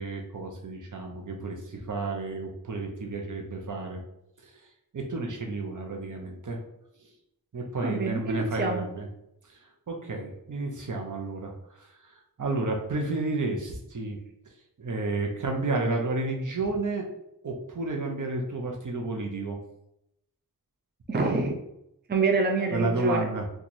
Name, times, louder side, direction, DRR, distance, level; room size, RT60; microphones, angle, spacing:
voice 1, 0.0-4.0 4.4-4.5 4.9-6.6 7.5-9.1 9.5-9.6 9.9-11.9 12.4-14.2 14.8-17.1 17.4-19.6 22.7-23.5, right 2 dB, 60° right, 1 dB, 0.8 m, -31 dB
voice 2, 7.8-8.9 21.1-21.5 22.1-23.3, right 3 dB, 30° right, 3 dB, 0.5 m, -26 dB
2.9 x 2.4 x 4.0 m, 0.80 s
wide cardioid pair, 45°, 34 cm